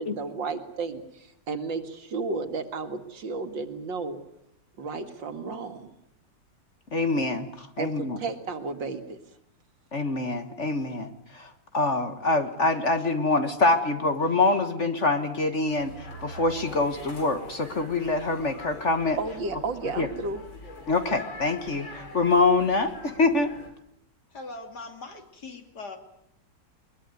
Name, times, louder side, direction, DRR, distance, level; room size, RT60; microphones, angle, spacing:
voice 1, 0.0-4.2 4.8-5.9 7.8-9.2 19.2-20.4, right 4 dB, 75° right, 8 dB, 2.7 m, -33 dB
voice 2, 6.9-8.2 9.9-19.2 20.0-20.1 20.9-23.5, left 3 dB, 40° left, 9 dB, 1.7 m, -25 dB
sound 1, 15.7-23.7, left 1 dB, 80° left, 5.3 m, -44 dB
voice 3, 24.3-26.0, left 3 dB, 55° left, 6 dB, 3.3 m, -41 dB
22.0 x 22.0 x 9.5 m, 0.76 s
omnidirectional pair, 2.1 m